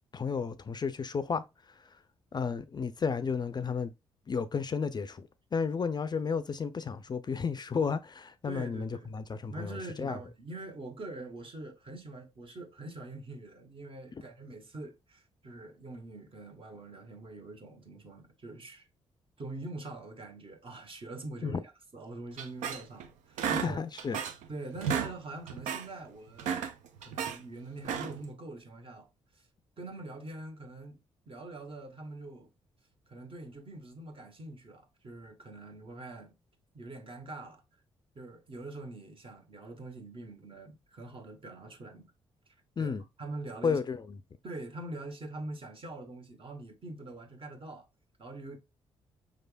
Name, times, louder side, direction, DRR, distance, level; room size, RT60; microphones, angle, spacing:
voice 1, 0.1-1.4 1.8-1.9 2.3-3.9 4.3-10.2 21.4-21.6 23.6-24.2 42.8-43.0 43.6-44.2, left 5 dB, 35° left, 0.4 m, -32 dB
voice 2, 8.5-9.2 9.5-18.9 19.4-21.6 21.9-23.8 24.5-26.5 27.0-29.1 29.3-29.5 29.8-31.0 31.3-32.5 33.1-36.3 36.7-37.6 38.1-42.1 42.8-43.8 44.4-47.9 48.2-48.6, right 2 dB, 45° right, 1.1 m, -44 dB
sound 1, 22.4-23.1 23.4-24.5 24.7-25.1 25.5-25.9 26.3-27.4 27.8-28.3, right 7 dB, 80° right, 0.5 m, -33 dB
5.0 x 3.3 x 2.3 m
hypercardioid pair, 50°, 13 cm